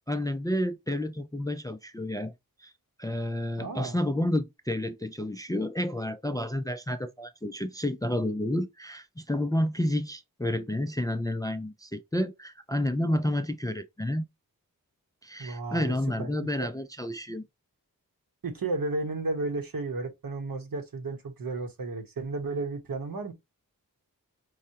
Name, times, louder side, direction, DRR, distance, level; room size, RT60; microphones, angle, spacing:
voice 1, 0.1-2.3 2.6-2.7 3.0-14.3 15.2-17.4, left 1 dB, 10° left, 0.4 m, -30 dB
voice 2, 3.6-4.0 15.4-16.7 18.4-23.3, right 3 dB, 70° right, 1.1 m, -33 dB
4.9 x 2.1 x 2.7 m
cardioid pair, 45°, 36 cm